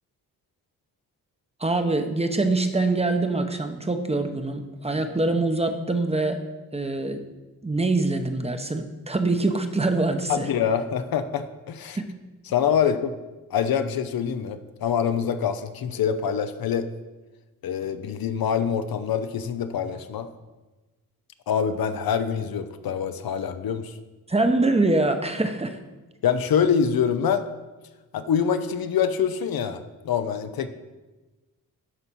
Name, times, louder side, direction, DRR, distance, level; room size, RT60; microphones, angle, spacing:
voice 1, 1.6-6.4 6.7-7.2 7.6-10.5 12.0-12.1 24.3-25.8, right 2 dB, 15° right, 7 dB, 0.8 m, -24 dB
voice 2, 10.3-12.0 12.5-13.1 13.5-16.9 17.6-20.3 21.5-23.9 26.2-27.4 28.1-30.7, left 7 dB, 75° left, 10 dB, 0.7 m, -25 dB
11.0 x 4.1 x 6.2 m, 1.2 s
cardioid pair, 85°, 37 cm